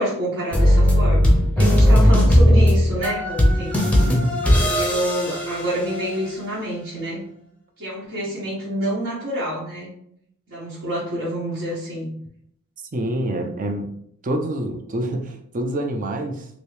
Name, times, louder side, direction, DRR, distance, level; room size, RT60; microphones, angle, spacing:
voice 1, 0.0-3.9 4.4-7.2 7.8-9.9 10.5-12.1, equal, 60° right, -9 dB, 1.1 m, -28 dB
sound 1, 0.5-6.3, equal, 5° left, 0.6 m, -17 dB
voice 2, 4.0-4.4 12.9-14.0 14.2-16.5, right 1 dB, 40° right, 4 dB, 0.5 m, -26 dB
3.0 x 2.6 x 3.3 m, 0.70 s
head